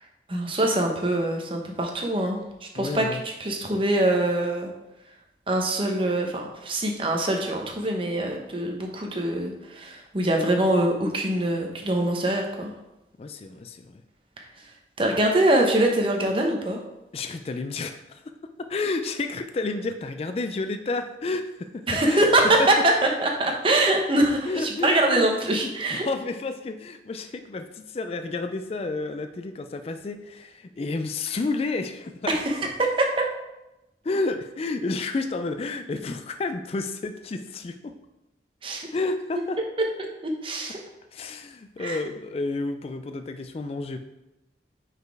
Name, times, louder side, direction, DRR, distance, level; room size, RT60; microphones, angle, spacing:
voice 1, 0.3-4.7 5.5-12.7 15.0-16.8 21.9-22.9 23.2-26.1 32.3-33.2 38.6-38.9 39.8-40.8 41.8-42.0, right 1 dB, 30° right, 2 dB, 0.8 m, -24 dB
voice 2, 2.8-3.2 13.2-14.0 17.1-18.2 18.6-22.3 22.6-22.7 24.5-32.4 34.0-37.9 38.9-39.6 41.1-44.0, left 3 dB, 35° left, 8 dB, 0.3 m, -31 dB
5.3 x 4.1 x 4.6 m, 0.95 s
head